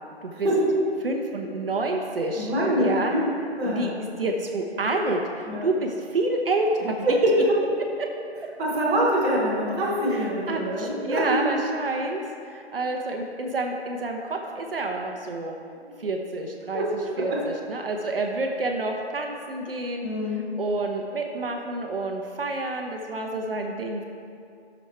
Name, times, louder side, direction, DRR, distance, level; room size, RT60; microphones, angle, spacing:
voice 1, 0.3-0.6 2.3-3.2 3.6-3.9 5.5-5.6 7.0-7.6 8.6-11.4 15.8-15.9 16.7-16.9 17.1-17.4 20.0-20.4, equal, 10° right, -9 dB, 1.4 m, -24 dB
voice 2, 1.0-2.5 2.8-3.1 3.6-3.9 4.2-6.9 8.0-8.1 10.1-15.5 16.0-16.9 17.2-24.0, right 2 dB, 55° right, 2 dB, 1.0 m, -28 dB
11.0 x 6.5 x 4.4 m, 2.4 s
figure-of-eight pair, 160°, 33 cm